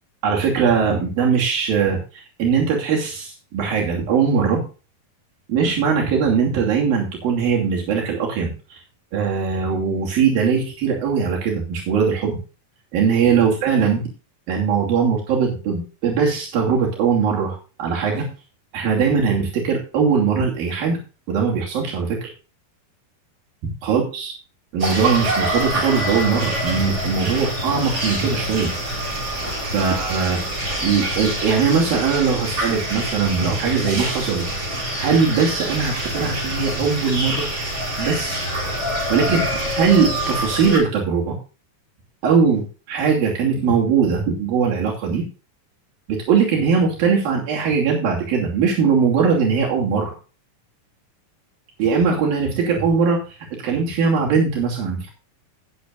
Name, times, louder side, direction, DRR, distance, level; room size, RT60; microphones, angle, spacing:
voice 1, 0.2-4.6 5.5-8.8 9.1-12.4 12.9-14.1 14.5-18.3 18.7-21.0 21.3-22.3 23.8-24.3 24.7-28.7 29.7-30.4 30.8-34.5 34.7-37.5 38.0-38.5 39.1-41.4 42.2-45.3 46.1-50.1 51.8-55.1, right 6 dB, 85° right, -2 dB, 4.6 m, -20 dB
sound 1, 24.8-40.8, right 1 dB, 30° right, 7.6 m, -26 dB
19.0 x 7.5 x 2.5 m, 0.34 s
omnidirectional pair, 4.0 m